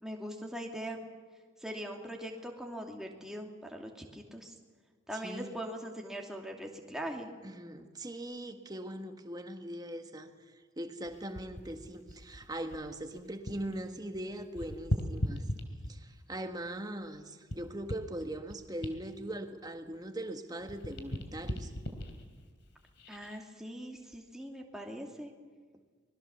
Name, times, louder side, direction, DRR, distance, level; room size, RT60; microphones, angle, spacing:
voice 1, 0.0-1.0 1.6-4.5 5.1-7.3 23.1-25.3, equal, 5° right, 1 dB, 2.6 m, -41 dB
voice 2, 5.1-5.6 7.4-10.3 10.8-15.4 15.9-21.7, right 1 dB, 20° right, 6 dB, 1.6 m, -40 dB
sound 1, 11.0-13.8 14.1-16.2 16.8-20.3 20.6-23.4 24.0-24.2, equal, 60° left, 3.1 m, -39 dB
25.5 x 21.0 x 7.1 m, 1.5 s
head